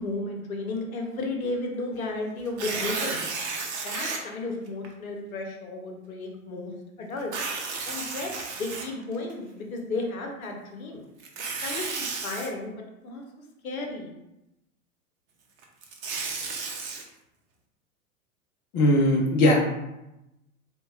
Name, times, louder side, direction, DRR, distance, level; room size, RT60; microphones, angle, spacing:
voice 1, 0.0-3.2 3.8-6.7 7.0-7.3 7.9-11.0 11.6-12.7 13.0-13.2 13.6-14.1, left 2 dB, 75° left, 2 dB, 0.7 m, -33 dB
Tearing, 2.5-4.2 4.8-4.9 7.2-9.3 11.2-12.5 15.6-17.0, right 4 dB, 50° right, 0.7 m, -33 dB
voice 2, 18.7-19.8, left 1 dB, 30° left, -1 dB, 0.6 m, -20 dB
3.9 x 2.3 x 2.3 m, 0.93 s
figure-of-eight pair, 95°, 42 cm